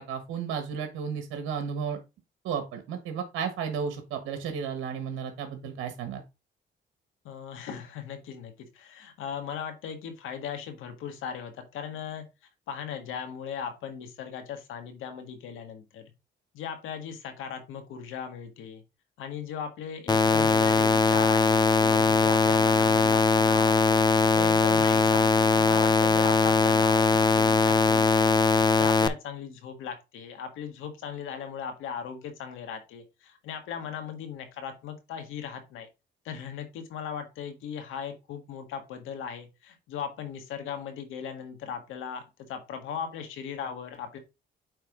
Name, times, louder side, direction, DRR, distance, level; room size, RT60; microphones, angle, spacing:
voice 1, 0.1-2.0 2.4-6.2, right 7 dB, 90° right, 6 dB, 1.4 m, -33 dB
voice 2, 7.2-12.3 12.7-16.1 16.5-18.8 19.2-28.4 28.8-35.9 36.2-44.2, left 7 dB, 90° left, 6 dB, 1.7 m, -38 dB
sound 1, 20.1-29.1, left 4 dB, 20° left, 0.6 m, -21 dB
8.7 x 3.4 x 3.7 m, 0.26 s
cardioid pair, 90°, 20 cm